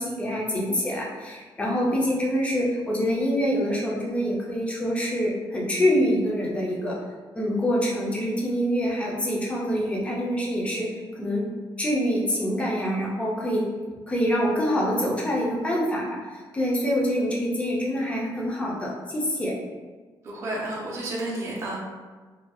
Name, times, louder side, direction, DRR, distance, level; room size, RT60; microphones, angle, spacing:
voice 1, 0.0-7.0 7.3-11.5 11.8-13.7 14.1-19.5, equal, 15° left, -4 dB, 0.5 m, -25 dB
voice 2, 20.2-21.8, right 1 dB, 35° right, -5 dB, 0.5 m, -31 dB
2.7 x 2.6 x 2.3 m, 1.3 s
cardioid pair, 165°, 9 cm